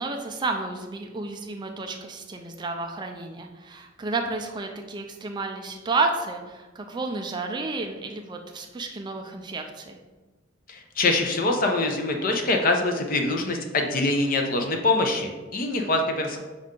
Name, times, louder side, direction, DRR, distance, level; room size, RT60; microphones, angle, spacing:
voice 1, 0.0-10.0, right 3 dB, 25° right, 4 dB, 0.3 m, -31 dB
voice 2, 10.7-16.4, left 2 dB, 45° left, 3 dB, 0.6 m, -24 dB
5.4 x 2.5 x 3.6 m, 1.3 s
head